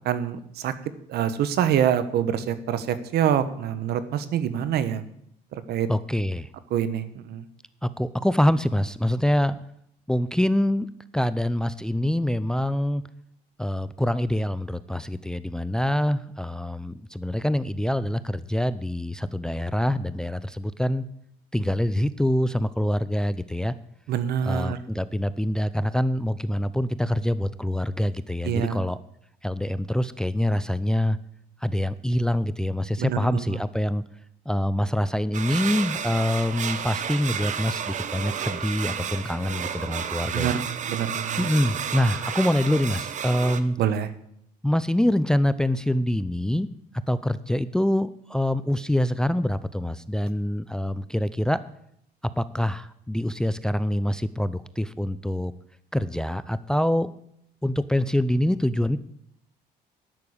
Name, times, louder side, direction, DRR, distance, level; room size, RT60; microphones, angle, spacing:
voice 1, 0.0-0.7 1.1-5.0 5.5-5.9 6.7-7.5 24.1-24.8 28.4-28.8 33.0-33.6 40.3-41.5 43.8-44.1, right 9 dB, 70° right, 13 dB, 1.1 m, -26 dB
voice 2, 5.9-6.5 7.8-9.6 10.1-10.9 11.1-13.0 13.6-21.0 21.5-23.7 24.4-29.0 29.4-31.2 31.6-34.0 34.5-40.5 41.4-43.8 44.6-46.7 47.1-51.6 52.4-55.5 55.9-57.1 57.6-59.0, left 1 dB, 5° left, 15 dB, 0.5 m, -25 dB
sound 1, 35.3-43.6, right 8 dB, 45° right, 0.9 m, -31 dB
10.5 x 6.7 x 8.7 m, 0.71 s
cardioid pair, 110°, 17 cm